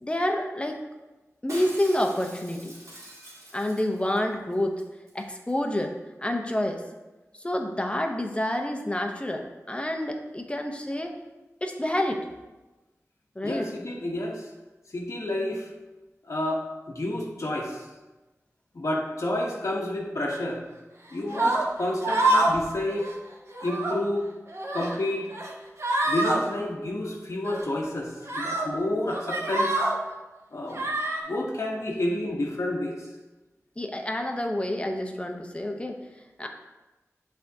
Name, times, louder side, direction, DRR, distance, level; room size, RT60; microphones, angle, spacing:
voice 1, 0.0-0.8 1.4-2.7 3.5-4.8 5.1-5.9 6.2-6.8 7.4-11.1 11.6-12.3 13.4-13.7 33.8-36.0 36.4-36.5, left 1 dB, 20° left, 3 dB, 0.7 m, -28 dB
Shatter, 1.5-4.2 4.5-4.6 4.8-5.2 5.5-5.6, right 1 dB, 70° right, 2.1 m, -44 dB
voice 2, 13.4-14.5 14.9-15.7 16.3-16.6 16.9-17.8 18.7-20.6 21.1-23.1 23.6-24.3 24.7-25.3 26.0-29.7 30.5-30.9 31.3-33.0, left 1 dB, 65° left, -2 dB, 1.0 m, -30 dB
sound 1, 21.3-21.6 22.0-22.6 22.9-23.1 23.5-24.0 24.5-25.0 25.3-25.5 25.8-26.4 27.5-27.6 28.3-28.7 29.1-30.0 30.7-31.2, right 2 dB, 55° right, 1.0 m, -26 dB
10.5 x 3.5 x 2.7 m, 1.1 s
wide cardioid pair, 65°, 6 cm